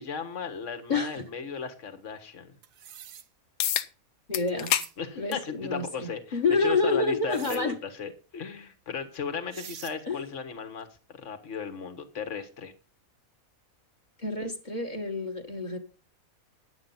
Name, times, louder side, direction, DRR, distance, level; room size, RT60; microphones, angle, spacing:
voice 1, 0.0-2.6 5.0-10.9 11.1-12.7, left 5 dB, 60° left, 7 dB, 1.8 m, -36 dB
voice 2, 0.9-1.2 4.3-4.7 5.1-7.7 10.1-10.3 14.2-15.8, left 3 dB, 30° left, 3 dB, 1.6 m, -28 dB
sound 1, 2.6-3.3 4.5-4.9 7.3-7.6 9.1-9.2 9.5-10.0, right 9 dB, 70° right, 1.3 m, -44 dB
sound 2, 3.6-3.9 4.3-4.9 5.3-5.5 6.5-6.6 11.5-11.6, left 10 dB, 80° left, 1.2 m, -27 dB
10.5 x 8.8 x 5.6 m, 0.35 s
omnidirectional pair, 1.5 m